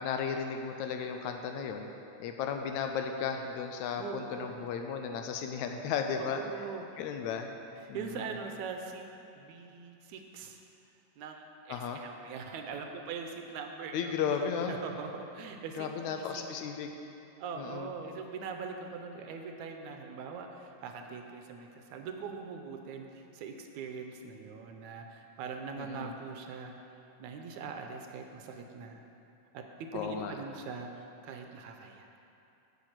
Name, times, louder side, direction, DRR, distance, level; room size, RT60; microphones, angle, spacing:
voice 1, 0.0-1.9 2.2-6.4 7.0-7.5 7.9-8.3 11.7-12.0 13.9-14.8 15.8-16.9 17.6-17.9 25.8-26.1 29.9-30.4, left 6 dB, 80° left, 5 dB, 1.9 m, -34 dB
voice 2, 4.0-4.5 6.2-7.0 7.8-9.0 9.3-10.6 11.2-14.1 14.7-16.5 17.4-26.7 27.2-29.0 29.5-32.1, right 5 dB, 80° right, 4 dB, 2.0 m, -42 dB
8.5 x 6.5 x 7.8 m, 2.8 s
omnidirectional pair, 3.5 m